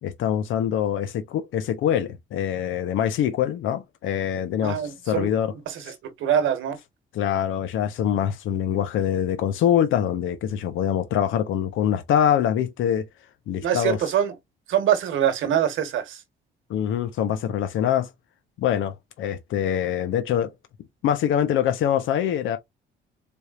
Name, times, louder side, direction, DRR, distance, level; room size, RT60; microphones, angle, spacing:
voice 1, 0.0-5.5 7.1-13.1 13.5-14.0 16.7-18.1 18.6-20.5 21.0-22.6, left 9 dB, 80° left, 0.6 m, -24 dB
voice 2, 4.6-5.3 5.7-6.8 13.6-14.4 14.7-16.2, right 9 dB, 80° right, 1.1 m, -24 dB
4.2 x 3.4 x 2.3 m
cardioid pair, 90°, 20 cm